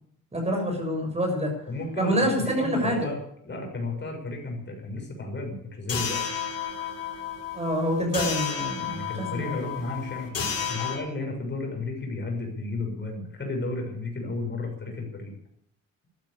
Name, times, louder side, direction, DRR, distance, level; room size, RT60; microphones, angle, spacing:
voice 1, 0.3-1.5 2.0-3.1 7.5-9.5, equal, 20° right, 3 dB, 6.8 m, -26 dB
voice 2, 1.7-3.2 3.5-6.2 8.8-15.3, left 2 dB, 35° left, 2 dB, 6.8 m, -33 dB
sound 1, 5.9-11.0, left 7 dB, 55° left, 6.1 m, -32 dB
14.0 x 12.0 x 8.6 m, 0.70 s
cardioid pair, 90°, 30 cm